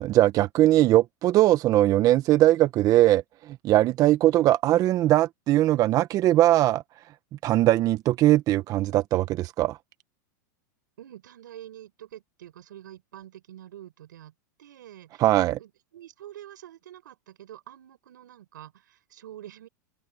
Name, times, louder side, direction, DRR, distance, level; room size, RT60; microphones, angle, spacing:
voice 1, 0.0-6.8 7.4-9.8 15.2-15.6, right 14 dB, 35° right, 0.7 m, -20 dB
voice 2, 11.0-14.3 14.6-15.3 15.6-19.7, right 12 dB, 85° right, 7.2 m, -46 dB
hypercardioid pair, 125°, 10 cm